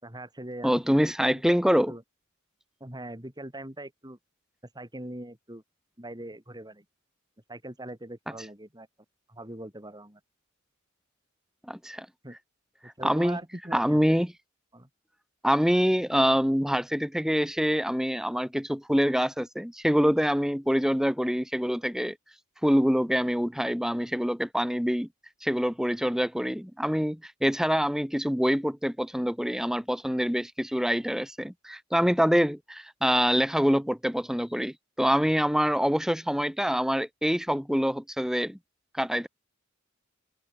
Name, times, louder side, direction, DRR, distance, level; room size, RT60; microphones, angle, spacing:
voice 1, 0.0-1.6 1.9-2.0 2.8-4.2 4.7-5.6 6.0-6.8 7.5-8.9 9.3-10.2 12.2-12.4 12.8-14.2 14.7-14.9, right 1 dB, 20° right, 5.0 m, -41 dB
voice 2, 0.6-1.9 11.7-12.1 13.0-13.4 13.7-14.3 15.4-22.2 22.6-25.1 25.4-38.6 39.0-39.3, equal, ahead, 3.7 m, -25 dB
head